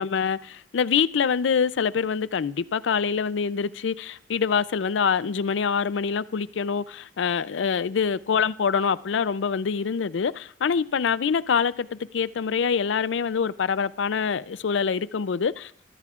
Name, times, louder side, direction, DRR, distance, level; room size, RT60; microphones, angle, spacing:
voice 1, 0.0-15.9, left 6 dB, 80° left, 0.4 m, -25 dB
21.5 x 14.0 x 2.4 m
head